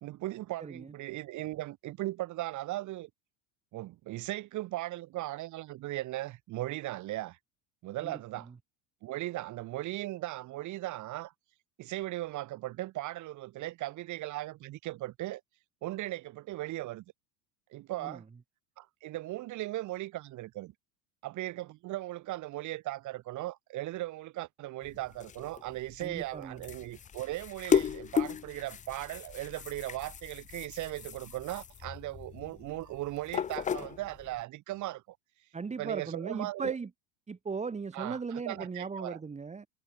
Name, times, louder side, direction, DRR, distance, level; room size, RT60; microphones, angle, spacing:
voice 1, 0.0-3.1 3.7-7.4 7.8-8.5 9.0-11.3 11.8-15.4 15.8-17.0 17.7-18.2 18.8-20.7 21.2-35.2 35.8-36.7 37.9-39.2, right 16 dB, 45° right, 2.1 m, -38 dB
voice 2, 0.6-0.9 8.0-8.5 18.0-18.2 26.0-26.6 35.5-36.9 37.3-39.7, right 5 dB, 15° right, 3.0 m, -38 dB
sound 1, 24.8-34.4, left 8 dB, 20° left, 0.7 m, -35 dB
supercardioid pair, 120°, 40 cm